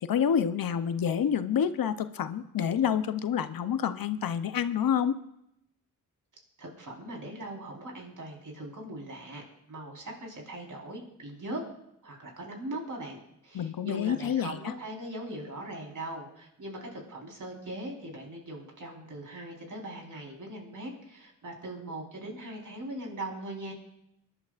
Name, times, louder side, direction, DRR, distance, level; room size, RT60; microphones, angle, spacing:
voice 1, 0.0-5.2 13.5-14.7, left 8 dB, 70° left, 11 dB, 0.8 m, -28 dB
voice 2, 6.6-11.6 12.0-23.7, right 1 dB, 60° right, 0 dB, 4.2 m, -40 dB
24.5 x 11.0 x 2.5 m, 0.78 s
cardioid pair, 65°, 36 cm